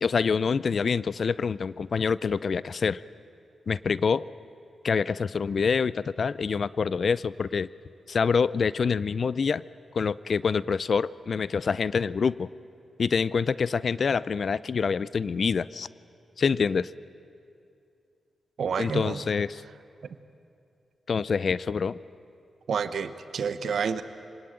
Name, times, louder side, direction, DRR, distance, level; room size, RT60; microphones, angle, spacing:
voice 1, 0.0-3.0 3.7-4.2 4.8-7.7 8.1-9.6 9.9-12.5 13.0-15.9 16.4-16.9 18.8-19.6 21.1-22.0, left 5 dB, 60° left, 19 dB, 0.5 m, -26 dB
voice 2, 18.6-19.2 22.7-24.0, right 6 dB, 75° right, 11 dB, 1.0 m, -29 dB
25.5 x 19.0 x 9.0 m, 2.5 s
supercardioid pair, 50°, 0 cm